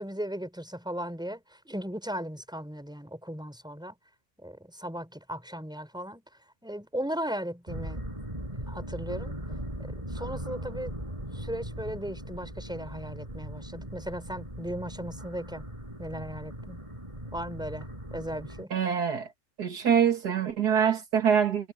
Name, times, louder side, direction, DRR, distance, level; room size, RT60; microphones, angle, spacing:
voice 1, 0.0-3.9 4.4-6.2 6.6-8.0 8.7-9.3 9.8-10.9 11.3-15.6 16.0-16.9 17.3-18.7, equal, ahead, 5.0 m, -37 dB
sound 1, 7.7-18.7, right 1 dB, 20° right, 7.3 m, -39 dB
voice 2, 18.7-19.3 19.6-21.7, right 7 dB, 75° right, 2.4 m, -24 dB
omnidirectional pair, 1.7 m